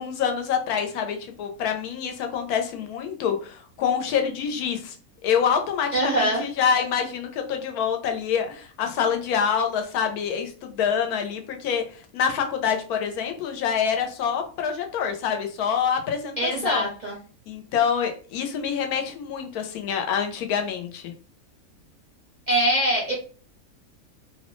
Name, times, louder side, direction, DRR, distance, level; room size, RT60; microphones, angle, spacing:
voice 1, 0.0-4.9 5.2-16.9 17.5-21.1, left 7 dB, 90° left, 5 dB, 1.1 m, -26 dB
voice 2, 5.9-6.4 16.4-17.2 22.5-23.1, right 1 dB, 50° right, -3 dB, 0.5 m, -23 dB
2.8 x 2.0 x 3.0 m, 0.39 s
omnidirectional pair, 1.6 m